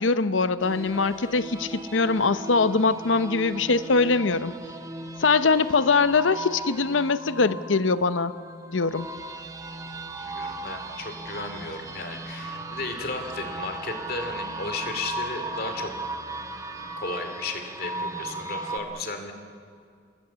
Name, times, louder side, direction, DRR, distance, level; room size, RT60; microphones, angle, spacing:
voice 1, 0.0-4.6 5.2-8.3 8.7-9.1, left 4 dB, 90° left, 14 dB, 0.8 m, -22 dB
sound 1, 0.6-18.8, right 2 dB, 20° right, 1.4 m, -37 dB
voice 2, 10.2-15.9 17.0-19.3, left 3 dB, 50° left, 6 dB, 2.6 m, -34 dB
27.0 x 21.5 x 7.0 m, 2.3 s
head